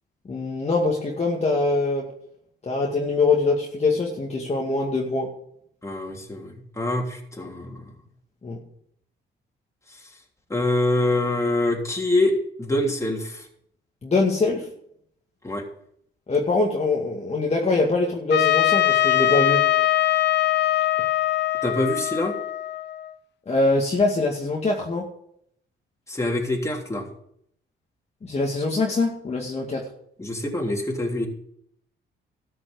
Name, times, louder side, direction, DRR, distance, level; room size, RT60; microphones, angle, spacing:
voice 1, 0.3-2.1 2.6-5.3 8.4-8.6 14.0-14.7 16.3-19.6 23.5-25.1 28.2-29.9, left 3 dB, 35° left, -2 dB, 2.1 m, -23 dB
voice 2, 5.8-7.9 9.9-10.0 10.5-13.5 15.4-15.6 21.6-22.3 26.1-27.1 30.2-31.3, left 1 dB, 15° left, 0 dB, 3.3 m, -25 dB
Trumpet, 18.3-23.1, left 13 dB, 60° left, 0.9 m, -22 dB
13.5 x 6.2 x 7.9 m, 0.70 s
cardioid pair, 90°, 20 cm